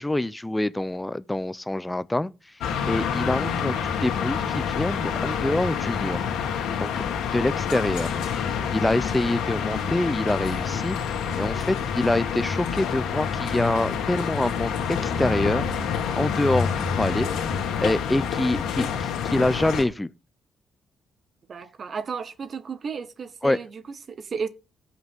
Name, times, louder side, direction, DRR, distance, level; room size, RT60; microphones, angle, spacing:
voice 1, 0.0-2.3 2.9-6.2 6.8-7.0 7.3-8.1 8.7-11.0 11.4-15.6 16.1-16.7 17.0-17.3 17.8-20.1 23.4-23.6, left 1 dB, 10° left, 0.6 m, -25 dB
sound 1, 2.6-19.8, left 7 dB, 85° left, 2.0 m, -27 dB
voice 2, 21.5-24.5, right 5 dB, 45° right, 0.9 m, -33 dB
17.0 x 6.0 x 3.6 m
cardioid pair, 90°, 0 cm